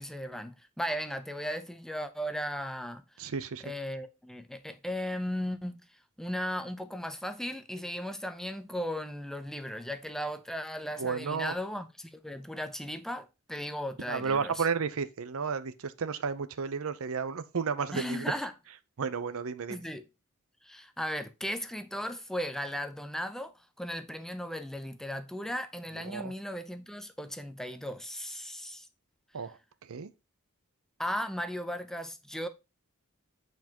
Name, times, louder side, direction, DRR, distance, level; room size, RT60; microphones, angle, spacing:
voice 1, 0.0-3.0 3.6-5.8 6.2-14.7 17.9-18.5 19.7-20.0 20.6-23.5 23.8-28.9 31.0-32.5, equal, ahead, 0.6 m, -36 dB
voice 2, 3.2-3.6 11.0-11.5 14.1-18.2 19.0-19.8 26.0-26.3 29.3-29.6 29.9-30.1, right 5 dB, 65° right, 0.6 m, -32 dB
8.2 x 4.5 x 2.9 m
head